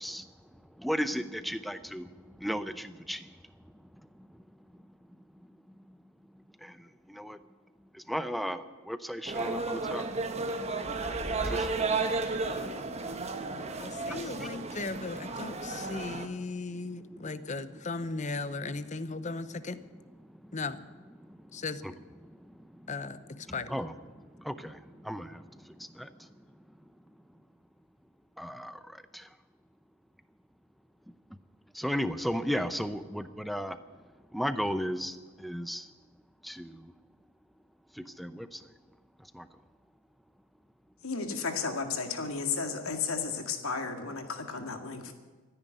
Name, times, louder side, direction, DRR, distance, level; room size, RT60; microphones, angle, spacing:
voice 1, 0.8-2.0 2.4-2.6 3.1-3.2 8.1-8.6 8.9-10.0 23.7-23.9 25.1-25.2 31.8-33.7 34.3-35.1 35.4-35.8, equal, ahead, 11 dB, 0.6 m, -32 dB
sound 1, 9.3-16.3, right 3 dB, 30° right, 1.1 m, -33 dB
voice 2, 13.8-19.8 20.5-20.8 21.5-21.8 22.9-23.7, left 3 dB, 35° left, 13 dB, 0.7 m, -37 dB
voice 3, 41.0-45.1, left 5 dB, 80° left, 5 dB, 2.0 m, -33 dB
14.5 x 9.9 x 9.2 m, 1.4 s
head